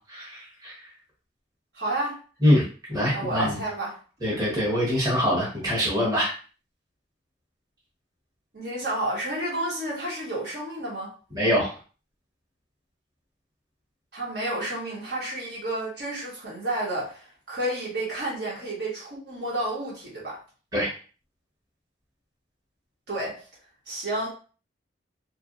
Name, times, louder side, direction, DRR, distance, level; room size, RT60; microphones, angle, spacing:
voice 1, 0.1-0.8 2.4-2.6 2.9-3.6 4.2-6.3 11.3-11.7 20.7-20.9, equal, 20° right, -6 dB, 1.1 m, -24 dB
voice 2, 1.7-2.2 3.1-4.0 8.5-11.1 14.1-20.4 23.1-23.4 23.9-24.3, right 1 dB, 65° right, -5 dB, 1.3 m, -30 dB
2.8 x 2.4 x 2.5 m, 0.37 s
head